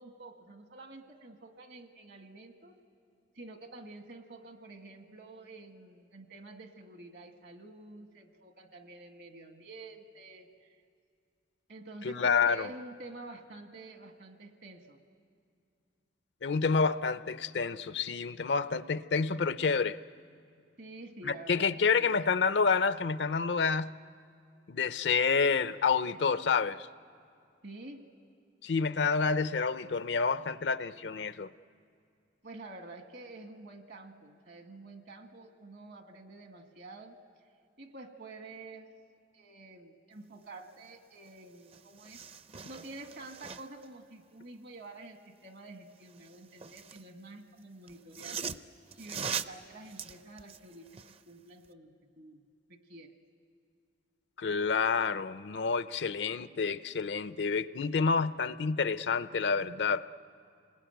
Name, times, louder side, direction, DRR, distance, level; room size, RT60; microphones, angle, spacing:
voice 1, 0.0-2.8 3.4-10.5 11.7-15.0 20.8-21.7 22.0-22.1 27.6-28.1 32.4-37.2 37.8-38.9 39.3-42.2 42.7-48.5 49.0-52.4 52.7-53.1, right 2 dB, 65° right, 1.8 m, -49 dB
voice 2, 12.0-12.7 16.4-20.0 21.2-23.9 24.7-26.9 28.6-31.5 54.4-60.0, left 5 dB, 70° left, 0.6 m, -28 dB
sound 1, 41.3-41.4 41.6-43.9 46.0-47.1 47.9-51.2 51.6-51.7, right 6 dB, 35° right, 0.5 m, -41 dB
28.5 x 20.5 x 9.1 m
head